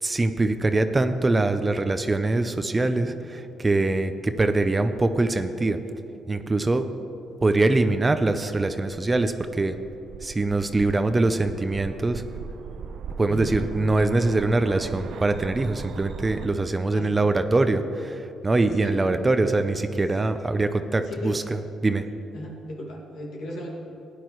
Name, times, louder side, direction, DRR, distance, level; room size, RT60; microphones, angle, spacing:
voice 1, 0.0-5.8 6.3-6.9 7.4-9.8 10.2-12.2 13.2-21.4 21.8-22.1, right 2 dB, 20° right, 9 dB, 0.6 m, -23 dB
sound 1, 8.7-16.5, right 6 dB, 65° right, 0.4 m, -39 dB
voice 2, 13.3-13.6 16.9-17.3 18.8-19.1 21.0-21.4 22.3-23.7, left 1 dB, 75° left, -1 dB, 2.1 m, -37 dB
16.0 x 10.0 x 3.1 m, 2.8 s
cardioid pair, 90°, 0 cm